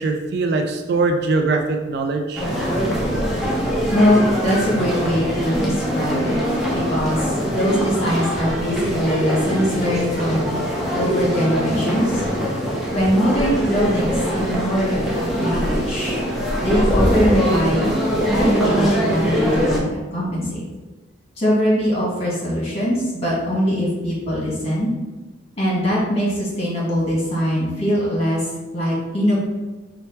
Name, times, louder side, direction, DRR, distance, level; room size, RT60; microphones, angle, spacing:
voice 1, 0.0-2.5, right 3 dB, 55° right, 4 dB, 0.4 m, -21 dB
sound 1, 2.3-19.8, equal, ahead, 0.7 m, -22 dB
voice 2, 3.9-6.4 6.7-10.4 10.9-12.2 12.9-16.2 16.6-17.9 18.3-19.8 20.1-20.6 21.4-24.9 25.6-28.4 28.7-29.4, equal, 30° left, -6 dB, 1.5 m, -22 dB
4.5 x 2.2 x 4.4 m, 1.2 s
head